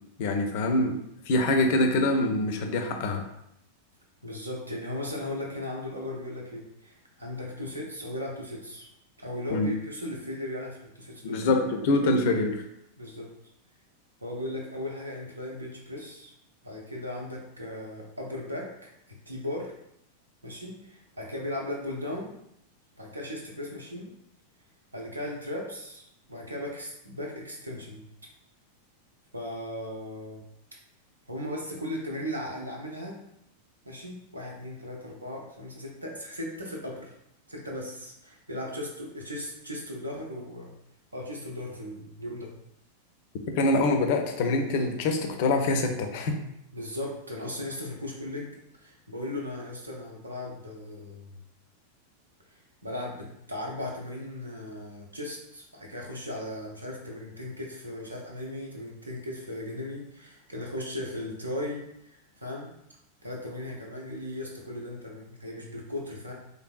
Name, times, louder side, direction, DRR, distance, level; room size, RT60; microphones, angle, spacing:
voice 1, 0.2-1.0 1.3-3.2 9.5-9.7 11.2-12.6 43.6-46.4, left 2 dB, 50° left, 5 dB, 0.4 m, -25 dB
voice 2, 4.2-8.9 9.2-11.5 13.0-13.3 14.2-16.3 16.6-19.7 20.4-22.4 23.0-24.1 24.9-28.1 29.3-30.4 31.3-33.2 33.9-37.1 37.5-40.7 41.1-42.5 46.7-51.4 52.5-62.7 63.2-66.3, left 1 dB, 80° right, -1 dB, 0.6 m, -37 dB
3.2 x 2.6 x 2.3 m, 0.79 s
figure-of-eight pair, 90°, 0 cm